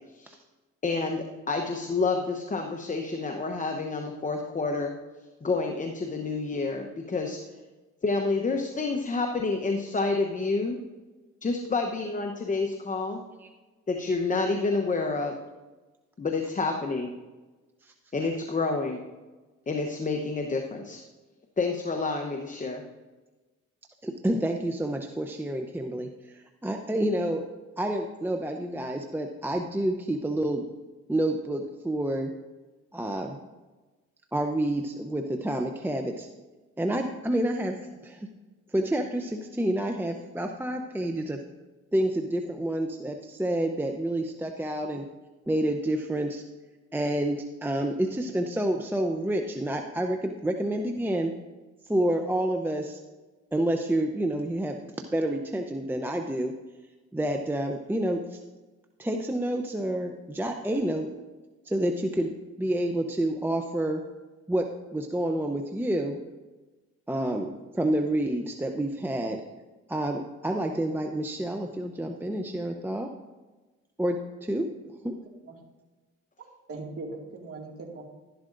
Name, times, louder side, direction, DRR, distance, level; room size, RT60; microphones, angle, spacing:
voice 1, 0.8-4.9 5.4-7.4 8.0-10.8 11.4-13.2 13.9-15.3 16.2-17.1 18.1-19.0 19.7-21.0 21.6-22.8, left 3 dB, 25° left, 3 dB, 1.0 m, -28 dB
voice 2, 24.0-26.1 26.3-27.4 27.8-30.6 31.1-32.3 32.9-33.4 34.3-36.3 36.8-37.8 38.0-38.3 38.7-41.4 41.9-45.0 45.5-46.4 46.9-51.3 51.9-53.0 53.5-56.5 57.1-58.4 59.0-61.1 61.7-62.3 62.6-64.0 64.5-66.2 67.1-69.4 69.9-73.1 74.0-74.7 75.0-75.2, right 1 dB, 5° right, 4 dB, 0.7 m, -28 dB
voice 3, 76.4-78.0, right 3 dB, 50° right, 0 dB, 2.2 m, -40 dB
12.0 x 11.5 x 2.6 m, 1.2 s
cardioid pair, 90°, 30 cm